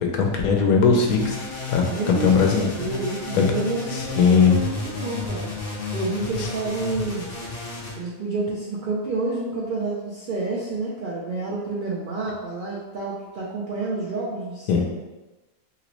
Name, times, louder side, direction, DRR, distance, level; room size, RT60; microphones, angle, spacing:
voice 1, 0.1-1.4 1.7-2.7 3.3-3.5 3.9-4.6 6.4-6.5 14.7-14.8, left 5 dB, 90° left, 2 dB, 1.1 m, -19 dB
sound 1, 1.1-7.9, left 4 dB, 55° left, 0.7 m, -32 dB
voice 2, 1.8-2.5 2.8-5.5 5.9-7.3 8.0-14.8, right 3 dB, 75° right, -5 dB, 0.4 m, -29 dB
2.9 x 2.9 x 2.9 m, 1.1 s
omnidirectional pair, 1.5 m